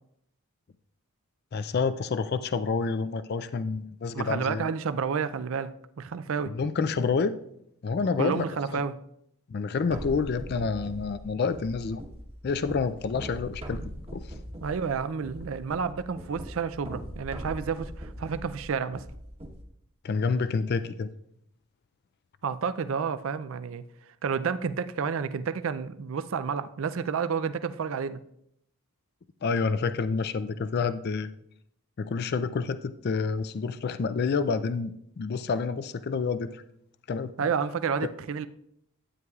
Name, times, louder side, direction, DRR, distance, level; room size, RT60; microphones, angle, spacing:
voice 1, 1.5-4.7 6.5-7.4 7.8-8.4 8.7-8.8 9.5-12.0 12.4-14.3 20.0-21.1 29.4-31.3 32.0-36.6 37.1-37.5 38.0-38.1, left 4 dB, 45° left, 12 dB, 0.3 m, -28 dB
voice 2, 4.1-6.5 8.2-9.0 14.6-19.0 22.4-23.8 24.2-28.2 37.4-38.5, right 6 dB, 60° right, 12 dB, 0.4 m, -30 dB
sound 1, 9.9-19.6, equal, 25° right, 1.1 m, -41 dB
12.5 x 9.3 x 2.4 m, 0.74 s
head